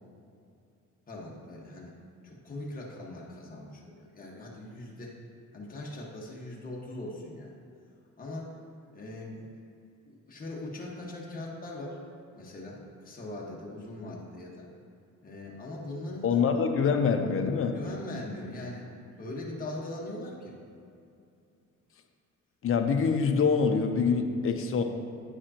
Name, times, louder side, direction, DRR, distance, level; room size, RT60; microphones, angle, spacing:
voice 1, 1.1-1.9 2.2-5.2 5.5-7.5 8.2-8.5 8.9-9.4 10.0-12.0 12.3-14.7 15.2-16.4 17.7-18.8 19.2-20.5, left 1 dB, 30° left, -4 dB, 1.4 m, -40 dB
voice 2, 16.2-17.8 22.6-24.8, left 5 dB, 45° left, 5 dB, 0.7 m, -25 dB
9.9 x 4.9 x 2.9 m, 2.5 s
cardioid pair, 90°, 30 cm